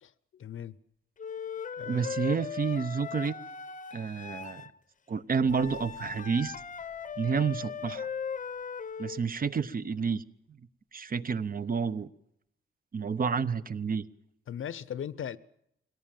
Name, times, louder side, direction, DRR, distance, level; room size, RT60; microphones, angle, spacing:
voice 1, 0.0-0.8 1.8-2.1 14.5-15.4, left 9 dB, 75° left, 0.8 m, -39 dB
Wind instrument woodwind instrument, 1.2-4.7 5.5-9.2, left 6 dB, 40° left, 0.8 m, -38 dB
voice 2, 1.9-3.3 3.9-4.6 5.1-6.6 7.2-8.1 9.0-10.2 10.9-12.1 12.9-14.0, right 5 dB, 45° right, 0.9 m, -29 dB
sound 1, 5.4-9.4, right 2 dB, 85° right, 4.8 m, -59 dB
23.0 x 17.5 x 9.1 m
wide cardioid pair, 120°, 21 cm